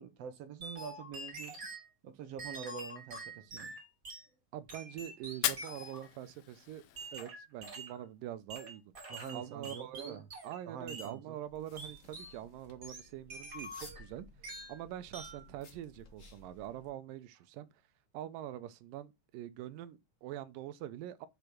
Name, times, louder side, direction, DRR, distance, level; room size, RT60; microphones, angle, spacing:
voice 1, 0.0-1.7 2.0-3.7 9.1-10.2 10.7-11.4, right 7 dB, 70° right, 1.6 m, -45 dB
sound 1, 0.6-1.9 2.4-4.3 4.7-6.1 7.0-8.0 8.5-10.6 10.9-11.2 11.8-12.4 12.8-14.1 14.4-14.8 15.1-15.5, right 2 dB, 30° right, 2.5 m, -46 dB
voice 2, 4.5-6.8 7.1-8.8 9.3-10.2 10.4-14.3 14.7-17.7 18.1-21.3, right 12 dB, 85° right, 2.4 m, -44 dB
Fire, 5.3-7.3, left 12 dB, 85° left, 1.3 m, -38 dB
sound 2, 11.5-16.9, left 2 dB, 55° left, 0.8 m, -57 dB
6.7 x 5.2 x 6.1 m
omnidirectional pair, 3.8 m